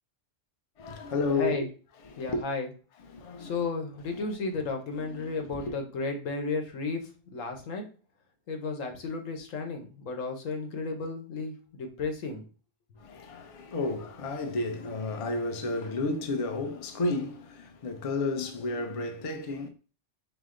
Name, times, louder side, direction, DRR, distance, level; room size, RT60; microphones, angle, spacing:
voice 1, 0.8-1.7 2.0-2.4 3.0-3.7 4.1-4.3 5.0-5.8 13.0-19.7, left 2 dB, 40° left, 0.5 m, -32 dB
voice 2, 2.2-2.7 3.4-7.0 7.3-7.8 8.5-12.4, left 3 dB, 85° left, 1.3 m, -33 dB
5.0 x 2.1 x 3.7 m
omnidirectional pair, 1.3 m